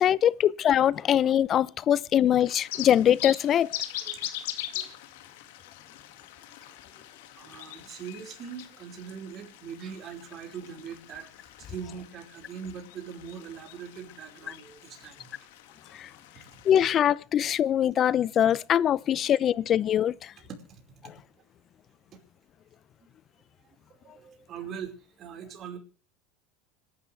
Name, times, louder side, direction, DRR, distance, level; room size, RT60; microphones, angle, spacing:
voice 1, 0.0-3.7 15.9-16.1 16.6-20.3, left 10 dB, 40° left, 0.6 m, -23 dB
sound 1, 2.4-16.8, left 13 dB, 75° left, 2.1 m, -42 dB
voice 2, 7.4-15.3 16.5-16.6 20.4-20.8 23.9-25.8, right 7 dB, 45° right, 4.8 m, -42 dB
26.0 x 12.0 x 3.4 m
hypercardioid pair, 95°, 0 cm